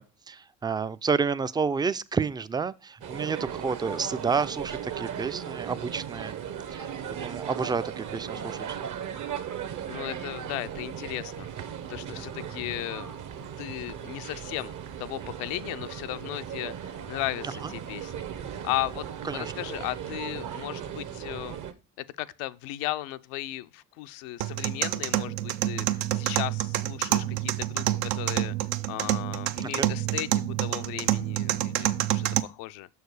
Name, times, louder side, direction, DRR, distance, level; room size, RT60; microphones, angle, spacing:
voice 1, 0.0-6.4 6.7-6.9 7.2-8.6 12.1-12.3 17.6-17.7 19.3-19.5 29.6-29.9, right 5 dB, 10° right, 0.3 m, -30 dB
sound 1, 3.0-21.7, right 9 dB, 50° right, 0.9 m, -37 dB
voice 2, 9.9-11.5 11.9-14.7 15.0-18.3 18.6-21.6 22.0-28.6 28.9-32.9, left 16 dB, 80° left, 0.5 m, -36 dB
sound 2, 24.4-32.4, right 14 dB, 75° right, 0.6 m, -28 dB
6.4 x 4.7 x 4.7 m
hypercardioid pair, 60°, 38 cm